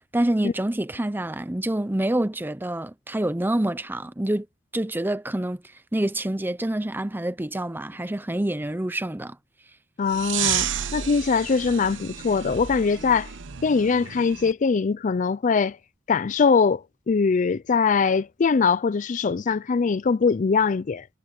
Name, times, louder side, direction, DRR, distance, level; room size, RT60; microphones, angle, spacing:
voice 1, 0.1-4.5 4.7-5.6 5.9-9.4, right 1 dB, 10° right, 0.6 m, -27 dB
voice 2, 10.0-13.3 13.6-15.8 16.1-21.1, left 5 dB, 40° left, 0.4 m, -22 dB
sound 1, 10.1-14.5, right 10 dB, 85° right, 0.8 m, -31 dB
head